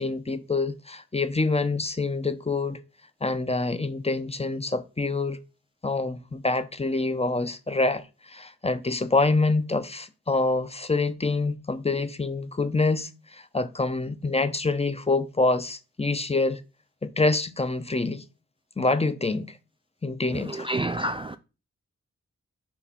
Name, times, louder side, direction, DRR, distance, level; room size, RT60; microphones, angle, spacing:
voice 1, 0.0-2.8 3.2-5.4 5.8-16.6 17.0-18.2 18.8-19.6 20.0-20.7, left 3 dB, 20° left, 0.7 m, -26 dB
voice 2, 20.6-21.4, right 1 dB, 20° right, 0.3 m, -28 dB
4.6 x 4.5 x 5.6 m
cardioid pair, 55°, 29 cm